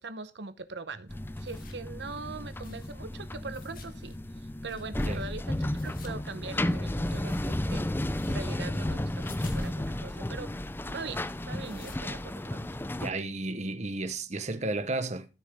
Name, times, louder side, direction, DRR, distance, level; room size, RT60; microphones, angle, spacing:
voice 1, 0.0-7.9 8.2-10.5 10.8-12.7, right 4 dB, 75° right, 0.9 m, -42 dB
sound 1, 1.1-13.0, left 2 dB, 55° left, 2.2 m, -52 dB
sound 2, 1.1-13.1, left 1 dB, 10° left, 0.5 m, -33 dB
voice 2, 13.0-15.2, right 2 dB, 40° right, 1.0 m, -33 dB
13.5 x 6.6 x 3.5 m
head